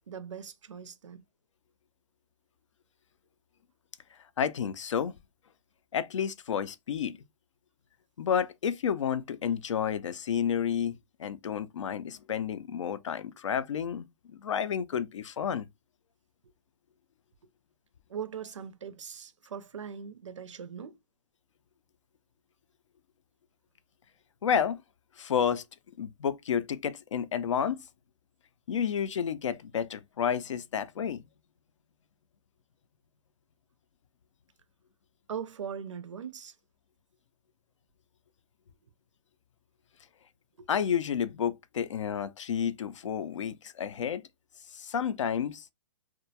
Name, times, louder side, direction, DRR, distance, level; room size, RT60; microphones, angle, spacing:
voice 1, 0.1-1.2 18.1-21.0 35.3-36.5, right 7 dB, 90° right, 0.5 m, -40 dB
voice 2, 4.4-5.1 5.9-7.2 8.2-15.7 24.4-24.8 25.2-25.6 26.0-27.8 28.7-31.2 40.7-44.2 44.7-45.7, left 8 dB, 85° left, 0.4 m, -30 dB
2.3 x 2.1 x 2.7 m
hypercardioid pair, 140°, 15 cm